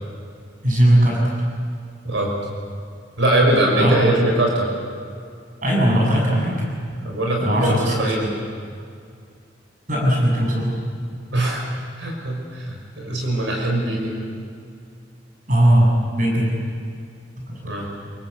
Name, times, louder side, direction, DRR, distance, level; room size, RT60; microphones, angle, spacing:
voice 1, 0.6-1.4 3.8-4.0 5.6-6.7 7.4-8.0 9.9-10.8 15.5-16.5 17.4-17.9, right 1 dB, 45° right, -2 dB, 7.5 m, -18 dB
voice 2, 3.2-4.7 7.0-8.3 11.3-11.6 12.0-14.2 17.6-17.9, right 1 dB, 75° right, 0 dB, 6.1 m, -21 dB
28.0 x 23.0 x 8.3 m, 2.3 s
head